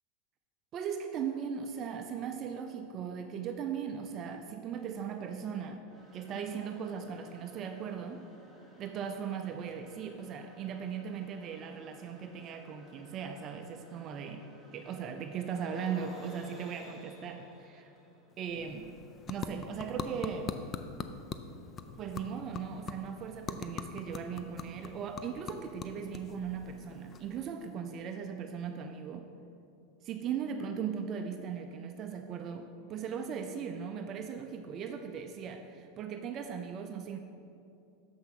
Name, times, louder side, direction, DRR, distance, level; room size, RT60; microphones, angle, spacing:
voice 1, 0.7-5.8 6.1-8.2 8.8-14.5 14.7-17.9 18.4-18.9 19.3-20.6 22.0-29.3 30.0-37.2, right 7 dB, 35° right, 6 dB, 0.4 m, -38 dB
sound 1, 5.9-20.8, equal, 15° left, 1.6 m, -56 dB
sound 2, 18.3-27.7, left 5 dB, 30° left, 0.4 m, -43 dB
6.8 x 5.8 x 6.1 m, 2.8 s
supercardioid pair, 135°, 0 cm